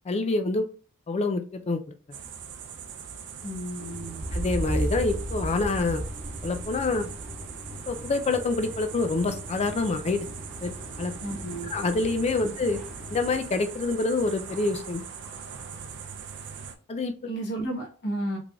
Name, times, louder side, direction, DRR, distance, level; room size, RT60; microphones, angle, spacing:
voice 1, 0.1-0.7 1.1-1.8 4.3-6.0 6.4-7.1 7.9-10.3 10.6-11.1 11.7-12.8 13.1-15.0 16.9-17.1, left 3 dB, 30° left, 7 dB, 0.4 m, -26 dB
sound 1, 2.1-16.7, right 7 dB, 55° right, 0.5 m, -41 dB
voice 2, 3.4-4.2 11.2-11.7 17.2-18.4, right 1 dB, 50° left, -2 dB, 1.0 m, -32 dB
sound 2, 3.8-13.4, left 1 dB, ahead, 0.8 m, -43 dB
sound 3, 4.1-8.0, right 1 dB, 15° right, 1.1 m, -33 dB
3.7 x 3.2 x 2.3 m, 0.39 s
head